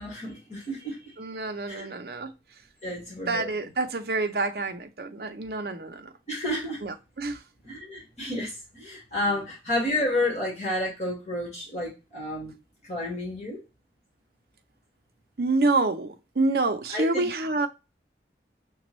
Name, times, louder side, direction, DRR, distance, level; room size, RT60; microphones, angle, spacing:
voice 1, 0.0-1.0 1.7-1.9 2.8-3.5 6.3-6.8 7.6-12.5 12.8-13.6 16.9-17.3, left 1 dB, 40° left, 1.7 m, -30 dB
voice 2, 1.2-2.3 3.3-6.1 6.8-7.4 15.4-17.7, right 3 dB, 60° right, 0.6 m, -27 dB
6.0 x 2.3 x 3.0 m
head